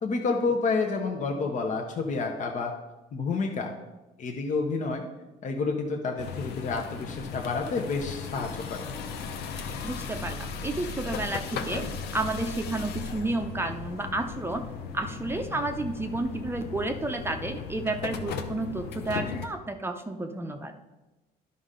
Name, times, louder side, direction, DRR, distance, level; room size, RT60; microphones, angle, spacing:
voice 1, 0.0-2.7 3.1-3.7 4.2-5.0 5.4-8.8, left 4 dB, 45° left, 2 dB, 0.9 m, -29 dB
sound 1, 6.2-19.5, left 6 dB, 75° left, 0.7 m, -37 dB
voice 2, 9.8-11.8 12.1-14.6 14.9-20.7, right 2 dB, 15° right, 5 dB, 0.6 m, -31 dB
11.0 x 5.4 x 3.8 m, 1.1 s
cardioid pair, 110°, 17 cm